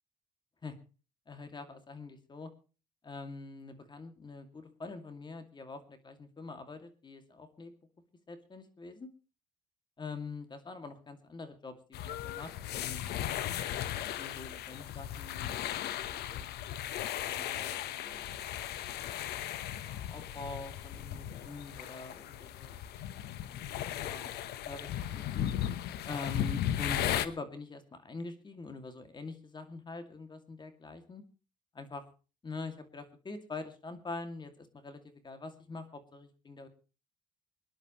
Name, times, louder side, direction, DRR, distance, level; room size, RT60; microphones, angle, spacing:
voice 1, 1.3-2.5 3.0-7.7 8.3-9.1 10.0-13.1 14.2-16.5 17.1-18.3 18.7-22.8 24.0-25.5 26.0-31.2 31.7-32.0 32.4-36.7, left 3 dB, 25° left, 8 dB, 2.4 m, -45 dB
sound 1, 11.9-27.3, left 11 dB, 75° left, 1.1 m, -36 dB
25.5 x 10.5 x 3.1 m, 0.34 s
cardioid pair, 110°, 17 cm